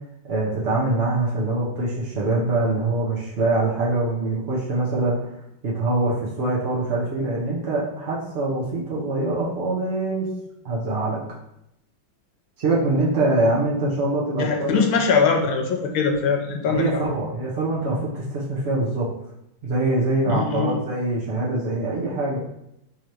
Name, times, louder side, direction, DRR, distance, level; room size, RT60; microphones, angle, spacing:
voice 1, 0.3-5.2 5.6-10.3 10.6-11.2 12.6-14.8 16.7-19.1 19.6-22.4, right 2 dB, 60° right, -5 dB, 0.6 m, -24 dB
voice 2, 14.4-17.0 20.3-20.8, left 5 dB, 85° left, 3 dB, 1.5 m, -22 dB
3.8 x 2.9 x 4.6 m, 0.82 s
omnidirectional pair, 2.3 m